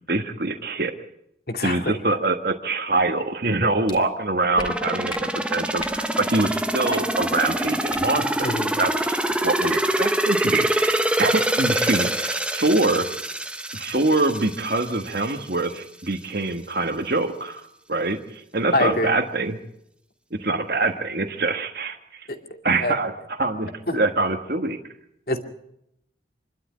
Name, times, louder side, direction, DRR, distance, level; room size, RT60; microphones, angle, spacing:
voice 1, 0.1-0.9 1.6-13.0 13.7-19.6 20.4-22.3 22.6-24.8, right 2 dB, 55° right, 4 dB, 1.4 m, -24 dB
voice 2, 1.5-1.9 8.4-8.7 18.7-19.1 22.3-22.4 22.8-22.9 23.9-24.0 25.3-25.4, left 1 dB, 55° left, 5 dB, 2.4 m, -24 dB
sound 1, 3.9-4.0 4.6-4.7 5.1-5.2 5.8-6.0 6.9-7.0 7.9-8.0 8.4-8.6, left 2 dB, 25° left, 3.5 m, -36 dB
sound 2, 4.6-15.3 15.7-15.8, right 1 dB, 5° right, 1.0 m, -25 dB
26.0 x 12.0 x 9.5 m, 0.79 s
head